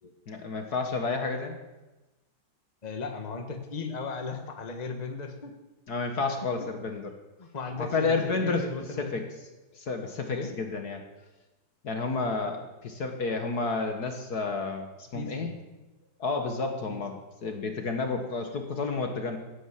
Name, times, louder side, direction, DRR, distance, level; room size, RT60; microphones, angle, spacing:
voice 1, 0.3-1.6 5.9-7.1 7.8-8.6 9.0-9.3 9.7-11.0 11.8-15.5 16.2-19.4, left 4 dB, 55° left, 5 dB, 1.9 m, -30 dB
voice 2, 2.8-5.6 6.6-6.7 7.4-9.2 10.3-10.5 15.1-15.6 16.9-17.0, left 4 dB, 20° left, 5 dB, 1.5 m, -37 dB
16.0 x 10.0 x 7.6 m, 1.1 s
omnidirectional pair, 2.2 m